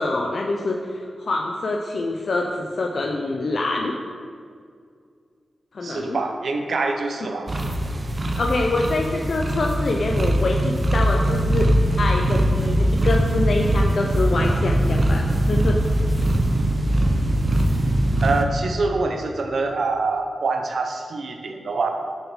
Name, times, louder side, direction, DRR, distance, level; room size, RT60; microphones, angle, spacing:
voice 1, 0.0-3.9 5.7-6.2 8.4-11.7 12.0-15.8, left 2 dB, 60° left, 1 dB, 0.7 m, -25 dB
voice 2, 5.8-7.5 18.2-21.9, right 3 dB, 70° right, 4 dB, 1.0 m, -25 dB
sound 1, 7.5-18.4, right 1 dB, 35° right, 0.9 m, -21 dB
7.5 x 7.1 x 6.3 m, 2.1 s
wide cardioid pair, 105°, 0 cm